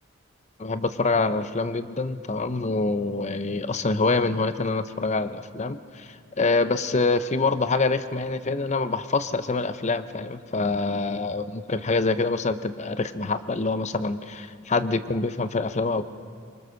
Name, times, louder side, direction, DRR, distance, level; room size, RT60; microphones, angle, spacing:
voice 1, 0.6-16.0, left 3 dB, 35° left, 11 dB, 0.7 m, -26 dB
25.5 x 23.0 x 6.5 m, 2.3 s
head